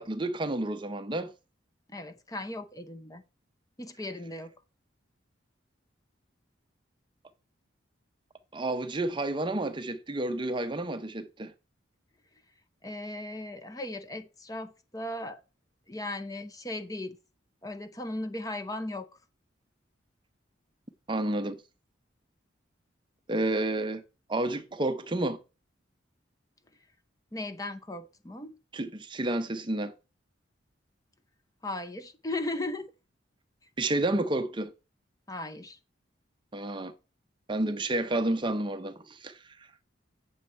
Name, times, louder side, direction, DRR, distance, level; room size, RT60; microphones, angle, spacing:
voice 1, 0.0-1.3 8.5-11.5 21.1-21.6 23.3-24.0 24.3-25.4 28.7-29.9 33.8-34.7 36.5-36.9 37.5-39.7, right 2 dB, 25° right, 0.6 m, -30 dB
voice 2, 1.9-3.2 3.8-4.5 12.8-15.4 15.9-17.2 17.6-19.1 27.3-28.6 31.6-32.9 35.3-35.8, left 2 dB, 20° left, 0.7 m, -37 dB
8.9 x 6.3 x 4.3 m
head